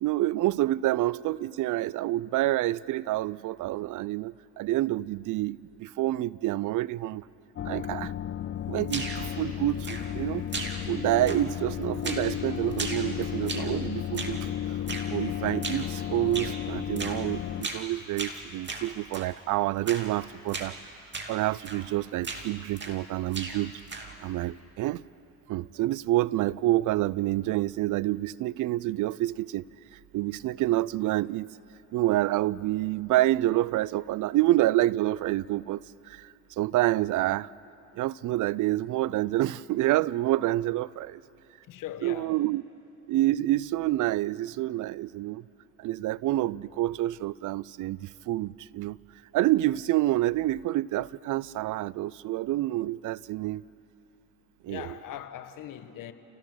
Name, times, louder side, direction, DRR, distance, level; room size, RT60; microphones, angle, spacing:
voice 1, 0.0-7.3 7.6-8.1 8.7-10.5 10.9-14.5 15.1-20.8 21.3-23.8 24.2-25.0 25.5-29.6 29.9-31.5 31.9-37.5 37.9-41.2 42.0-42.6 43.1-45.4 45.8-49.0 49.3-53.6 54.6-54.9, right 16 dB, 60° right, 0.5 m, -28 dB
sound 1, 7.6-17.6, left 10 dB, 35° left, 0.5 m, -33 dB
sound 2, 8.9-9.3 9.8-10.2 10.5-11.0 11.3-11.7 12.0-12.3 12.7-13.8 14.1-14.4 14.9-15.1 15.6-15.9 16.3-16.6 17.0-17.2 17.6-17.9 18.2-19.3 19.9-20.1 20.5-20.7 21.1-21.4 21.6-21.9 22.2-23.0 23.3-24.2, right 3 dB, 30° right, 2.5 m, -37 dB
voice 2, 41.7-42.3 54.7-56.1, left 11 dB, 65° left, 1.3 m, -40 dB
29.5 x 16.5 x 6.3 m
supercardioid pair, 75°, 35 cm